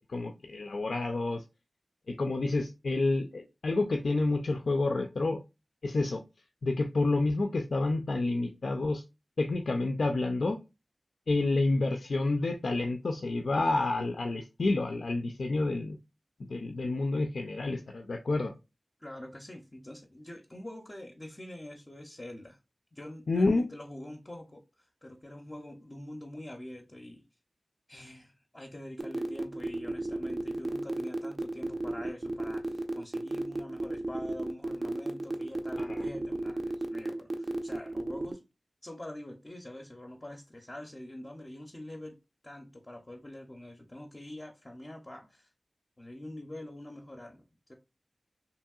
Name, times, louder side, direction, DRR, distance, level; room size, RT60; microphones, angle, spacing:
voice 1, 0.1-1.4 2.1-5.4 5.8-6.2 6.6-9.0 9.4-10.6 11.3-16.0 16.5-18.5 23.3-23.7 35.8-36.0, left 2 dB, 85° left, 0.3 m, -29 dB
voice 2, 19.0-22.6 22.9-24.6 25.0-27.2 27.9-38.4 38.8-42.2 42.4-45.5 46.0-47.4 47.7-47.8, left 1 dB, 30° left, 0.5 m, -45 dB
sound 1, 29.0-38.3, right 2 dB, 45° right, 0.4 m, -33 dB
2.9 x 2.7 x 2.3 m
wide cardioid pair, 65°, 0 cm